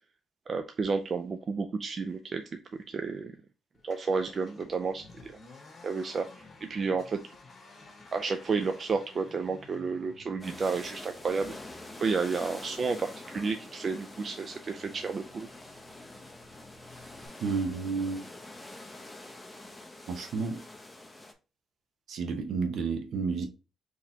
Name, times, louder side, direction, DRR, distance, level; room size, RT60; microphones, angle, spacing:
voice 1, 0.5-2.6 2.9-3.4 3.8-5.3 5.8-7.3 8.1-11.5 12.0-15.5, right 4 dB, 45° right, 0.4 m, -31 dB
Accelerating revving vroom, 3.7-17.3, left 3 dB, 40° left, 1.3 m, -54 dB
sound 1, 10.4-21.3, left 2 dB, 10° left, 0.7 m, -46 dB
voice 2, 17.4-18.2 20.1-20.6 22.1-23.5, right 4 dB, 65° right, 0.8 m, -31 dB
4.0 x 3.0 x 2.8 m
cardioid pair, 90°, 0 cm